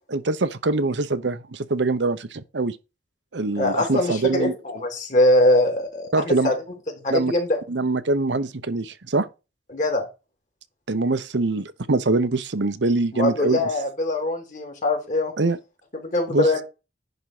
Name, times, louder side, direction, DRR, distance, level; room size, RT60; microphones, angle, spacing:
voice 1, 0.1-2.8 3.3-4.5 6.1-6.5 7.1-7.3 7.7-9.3 10.9-13.7 15.4-15.6 16.3-16.5, right 3 dB, 80° right, 0.9 m, -23 dB
voice 2, 3.6-6.6 6.9-7.6 9.7-10.1 13.1-15.3 16.0-16.6, left 1 dB, 45° left, 3.0 m, -22 dB
10.5 x 3.7 x 6.0 m
head